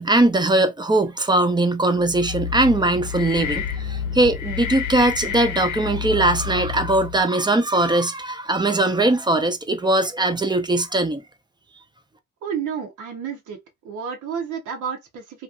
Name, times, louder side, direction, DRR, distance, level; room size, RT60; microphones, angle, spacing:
voice 1, 0.0-11.2, right 2 dB, 15° right, 0.6 m, -20 dB
sound 1, 2.0-7.3, left 7 dB, 85° left, 0.8 m, -29 dB
voice 2, 12.4-13.6 13.8-15.2, right 7 dB, 80° right, 1.0 m, -30 dB
3.0 x 2.6 x 2.4 m
cardioid pair, 90°, 30 cm